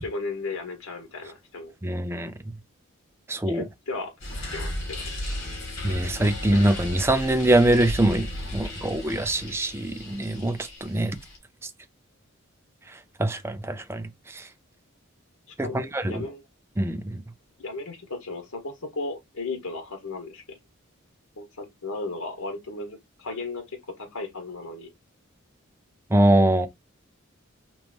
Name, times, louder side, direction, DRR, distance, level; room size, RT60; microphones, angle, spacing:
voice 1, 0.0-1.7 3.4-4.1 4.5-5.1 15.5-16.4 17.6-20.6 21.4-24.9, left 3 dB, 90° left, 1.3 m, -35 dB
voice 2, 1.8-2.3 3.3-3.6 5.8-8.3 8.5-11.2 13.2-14.0 14.3-14.4 15.6-16.2 16.8-17.2 26.1-26.7, right 1 dB, 10° right, 0.3 m, -23 dB
sound 1, 4.2-11.4, left 1 dB, 70° left, 2.9 m, -35 dB
5.0 x 3.0 x 3.4 m
head